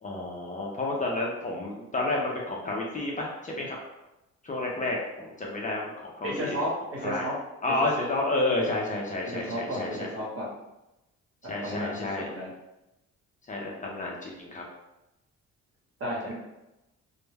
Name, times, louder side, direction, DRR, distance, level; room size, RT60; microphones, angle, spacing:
voice 1, 0.0-3.8 4.4-6.6 7.0-7.3 7.6-10.1 11.5-12.3 13.5-14.6, left 2 dB, 25° left, -2 dB, 0.5 m, -30 dB
voice 2, 6.2-7.3 7.9-8.1 9.3-10.5 11.6-12.5 16.0-16.3, equal, 50° right, -4 dB, 1.0 m, -33 dB
2.2 x 2.1 x 3.2 m, 0.95 s
cardioid pair, 90°, 30 cm